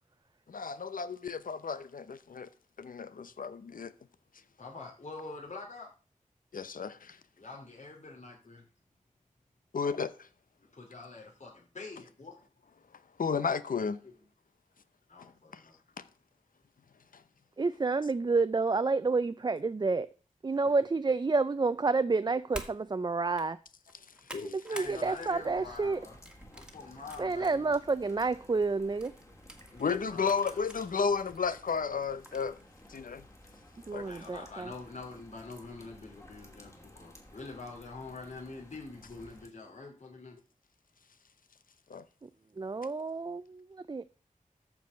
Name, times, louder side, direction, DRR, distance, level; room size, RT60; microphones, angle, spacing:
voice 1, 0.5-2.5 2.8-3.9 6.5-7.2 9.7-10.3 13.2-14.0 15.5-15.6 24.3-24.6 29.8-32.6 32.9-33.2 33.9-34.1 41.9-42.0, left 5 dB, 85° left, 0.8 m, -33 dB
voice 2, 4.6-5.9 7.4-8.6 10.8-11.5 11.7-12.3 15.1-15.2 20.6-20.7 24.7-26.1 26.5-27.8 30.0-30.8 34.0-40.3, left 3 dB, 60° left, 2.8 m, -45 dB
voice 3, 17.6-20.1 20.4-23.6 24.3-26.0 27.2-29.1 33.9-34.7 42.6-44.0, right 3 dB, 30° right, 0.4 m, -29 dB
sound 1, 22.5-22.8 23.2-23.5 23.9-24.9 25.3-25.6 26.3-27.5 28.0-28.1 29.0-30.8 31.3-31.4 32.3-32.6, right 1 dB, 5° right, 1.7 m, -47 dB
sound 2, 24.8-39.5, equal, 20° left, 2.6 m, -55 dB
13.5 x 4.8 x 6.3 m
wide cardioid pair, 85°, 14 cm